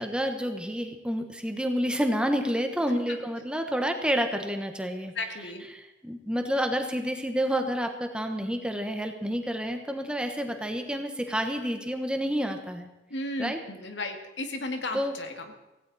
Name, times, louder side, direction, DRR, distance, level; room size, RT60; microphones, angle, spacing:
voice 1, 0.0-5.1 5.4-12.9 13.4-13.6 14.9-15.1, equal, 5° right, 5 dB, 1.2 m, -29 dB
voice 2, 5.2-5.6 13.1-15.3, left 2 dB, 75° left, 5 dB, 2.1 m, -34 dB
16.5 x 16.5 x 4.2 m, 1.1 s
head